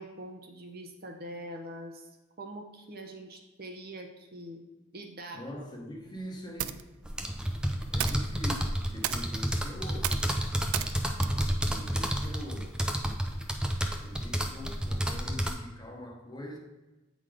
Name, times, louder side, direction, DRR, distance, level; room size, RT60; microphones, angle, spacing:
voice 1, 0.0-2.1 2.4-4.6 4.9-5.5, right 1 dB, 45° right, 3 dB, 0.7 m, -43 dB
voice 2, 5.3-6.8 7.9-10.2 11.7-12.8 14.0-16.6, equal, 20° left, 1 dB, 0.9 m, -43 dB
sound 1, 6.0-12.7, right 11 dB, 80° right, 0.3 m, -39 dB
sound 2, 7.0-15.5, equal, 5° right, 0.4 m, -30 dB
8.1 x 3.9 x 4.9 m, 1.1 s
head